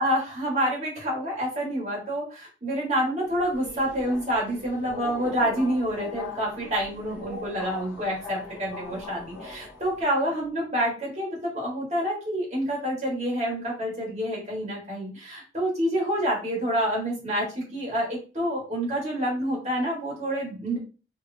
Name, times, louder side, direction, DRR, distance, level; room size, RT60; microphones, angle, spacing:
voice 1, 0.0-20.8, equal, 35° right, -4 dB, 1.7 m, -28 dB
Subway metro underground, 3.2-10.0, left 2 dB, 10° right, 1.6 m, -41 dB
3.3 x 3.3 x 2.7 m, 0.34 s
head